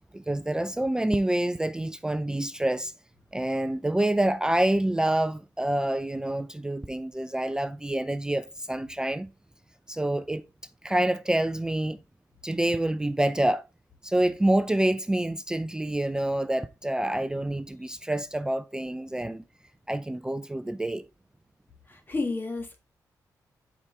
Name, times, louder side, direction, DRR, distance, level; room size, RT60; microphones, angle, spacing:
voice 1, 0.1-2.9 3.3-9.3 9.9-10.4 10.8-12.0 12.4-13.6 14.0-19.4 19.9-21.1, right 1 dB, 10° right, 0.4 m, -27 dB
voice 2, 21.9-22.8, left 3 dB, 30° left, 1.7 m, -31 dB
7.3 x 4.9 x 3.3 m
cardioid pair, 85°, 7 cm